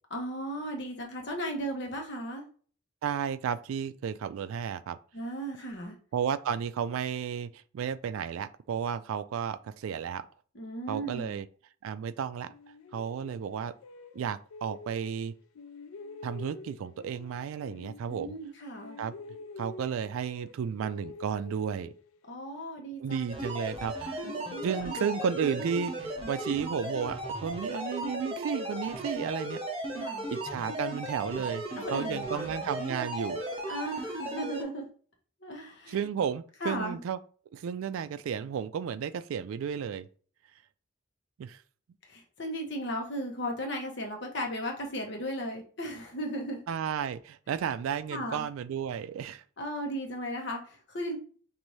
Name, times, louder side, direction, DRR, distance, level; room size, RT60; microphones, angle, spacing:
voice 1, 0.1-2.4 5.1-6.0 10.5-11.4 18.1-19.0 22.3-23.2 24.2-25.1 29.9-30.3 31.8-32.5 33.7-34.9 35.4-36.0 36.6-37.0 42.0-46.6 48.1-48.5 49.6-51.2, equal, 55° left, 1.0 m, -36 dB
voice 2, 3.0-5.0 6.1-10.3 10.9-11.5 11.8-12.5 12.9-13.7 14.1-15.3 16.2-18.3 19.0-19.1 19.6-21.9 23.0-24.2 24.6-29.6 30.3-31.6 31.9-33.4 35.9-37.2 37.5-40.1 41.4-41.6 46.7-49.4, right 7 dB, 80° right, 0.3 m, -33 dB
sound 1, 12.5-15.2 15.6-18.5 18.8-22.3, left 3 dB, 85° left, 0.4 m, -48 dB
sound 2, 23.3-34.6, right 1 dB, 25° right, 0.8 m, -36 dB
sound 3, 28.8-29.2 31.3-33.1 33.4-33.7, right 2 dB, 15° left, 0.9 m, -51 dB
5.3 x 2.6 x 3.1 m
head